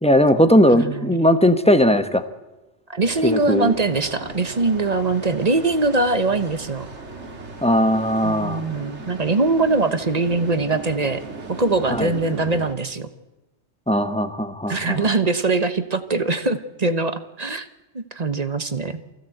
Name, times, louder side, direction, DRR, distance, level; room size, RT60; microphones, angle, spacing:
voice 1, 0.0-2.2 3.2-3.7 7.6-8.6 11.9-12.1 13.9-15.1, equal, 5° left, 9 dB, 1.1 m, -18 dB
voice 2, 0.7-1.2 2.9-6.9 8.2-11.2 11.5-13.1 14.7-17.7 17.9-19.0, right 3 dB, 35° right, 10 dB, 1.2 m, -22 dB
sound 1, 3.0-12.8, right 3 dB, 75° right, 2.3 m, -37 dB
24.0 x 16.0 x 7.9 m, 1.1 s
omnidirectional pair, 1.2 m